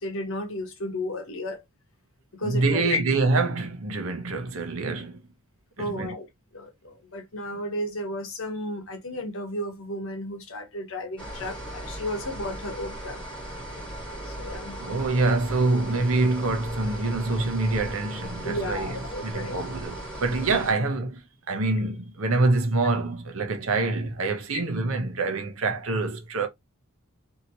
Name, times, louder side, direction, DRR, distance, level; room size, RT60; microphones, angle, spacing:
voice 1, 0.0-1.6 2.3-3.0 5.8-6.3 6.5-13.2 14.2-14.8 18.4-19.6 24.5-24.6, left 1 dB, 60° left, 1.0 m, -33 dB
voice 2, 2.4-5.2 5.8-6.1 14.8-26.5, right 3 dB, 65° right, 0.8 m, -26 dB
sound 1, 11.2-20.7, right 1 dB, 5° left, 1.5 m, -37 dB
2.9 x 2.8 x 2.6 m
head